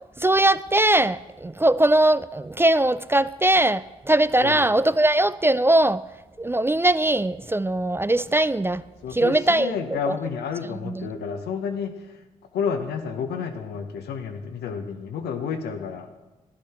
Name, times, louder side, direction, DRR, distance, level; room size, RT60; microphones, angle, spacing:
voice 1, 0.2-6.0 6.4-8.8 9.1-9.7 10.1-10.2 10.9-11.1, right 1 dB, 15° right, 0.4 m, -20 dB
voice 2, 9.0-12.2 12.5-16.1, left 6 dB, 80° left, 1.0 m, -30 dB
11.5 x 11.0 x 4.4 m
supercardioid pair, 45°, 17 cm